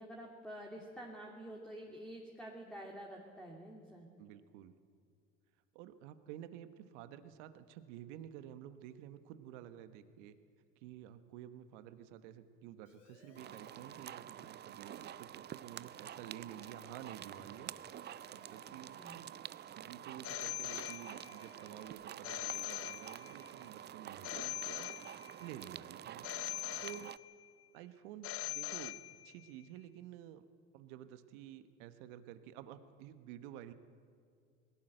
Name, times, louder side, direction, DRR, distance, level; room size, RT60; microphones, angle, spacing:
voice 1, 0.0-4.1 18.7-19.1, right 1 dB, ahead, -1 dB, 2.8 m, -49 dB
voice 2, 4.2-4.7 5.7-10.3 10.8-17.7 18.3-19.3 19.8-24.9 25.4-26.3 26.8-27.1 27.7-29.0 29.2-30.4 30.7-33.7, right 11 dB, 75° right, 11 dB, 1.2 m, -51 dB
Siren, 12.9-21.9, left 3 dB, 80° left, 4.0 m, -65 dB
sound 1, 13.4-27.2, right 11 dB, 30° right, 0.5 m, -49 dB
Telephone, 20.2-21.5 22.2-23.5 24.2-25.5 26.2-27.5 28.2-29.5, left 14 dB, 40° left, 0.6 m, -42 dB
19.5 x 17.0 x 7.8 m, 2.3 s
hypercardioid pair, 80°, 36 cm